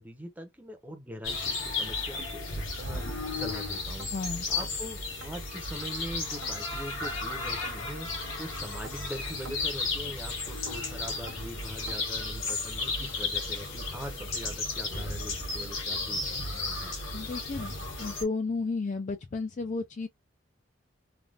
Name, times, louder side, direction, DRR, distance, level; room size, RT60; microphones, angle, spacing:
voice 1, 0.0-2.5 2.7-3.0 3.3-4.1 4.5-8.1 8.4-16.9, equal, 10° right, 0.7 m, -42 dB
sound 1, 1.2-18.2, left 3 dB, 75° left, 1.4 m, -34 dB
sound 2, 2.2-2.3 2.8-2.9 3.4-3.5 4.0-4.1 4.6-4.7 5.2-5.3 5.8-5.9 6.4-6.6 7.0-7.2 7.6-7.8 8.2-8.4 8.8-9.0 9.5-9.6 10.1-10.2 10.7-10.8 11.3-11.4 11.9-12.0 12.5-12.6 13.1-13.2 13.7-13.8 14.3-14.4 14.9-15.0, right 3 dB, 60° right, 0.7 m, -47 dB
voice 2, 4.1-4.5 17.1-17.7 18.0-20.1, left 3 dB, 35° left, 0.3 m, -32 dB
3.3 x 2.3 x 2.4 m
head